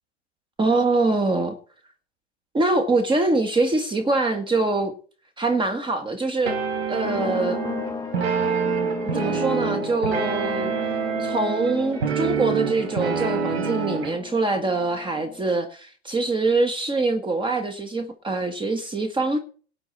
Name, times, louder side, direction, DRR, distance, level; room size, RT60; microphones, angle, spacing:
voice 1, 0.6-1.6 2.5-4.9 5.4-6.6 6.9-7.6 9.0-10.7 11.2-19.4, right 2 dB, 15° right, 1.7 m, -24 dB
sound 1, 6.4-14.2, right 6 dB, 70° right, 4.1 m, -26 dB
sound 2, 7.0-15.6, left 5 dB, 10° left, 0.9 m, -36 dB
18.0 x 9.1 x 4.2 m
hypercardioid pair, 105°, 33 cm